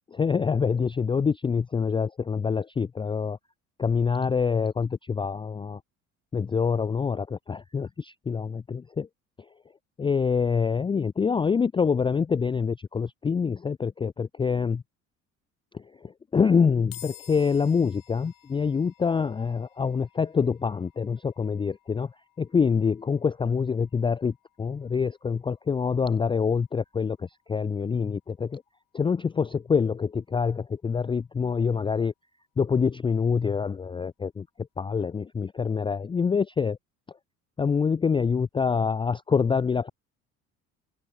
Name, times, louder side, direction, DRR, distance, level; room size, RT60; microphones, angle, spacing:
voice 1, 0.1-3.4 3.8-5.8 6.3-9.1 10.0-14.8 15.7-22.1 22.4-28.6 28.9-32.1 32.6-34.5 34.8-36.8 37.6-39.9, left 5 dB, 15° left, 0.4 m, -26 dB
sound 1, 16.9-30.2, left 13 dB, 50° left, 3.1 m, -54 dB
open air
figure-of-eight pair, 60°, 40 cm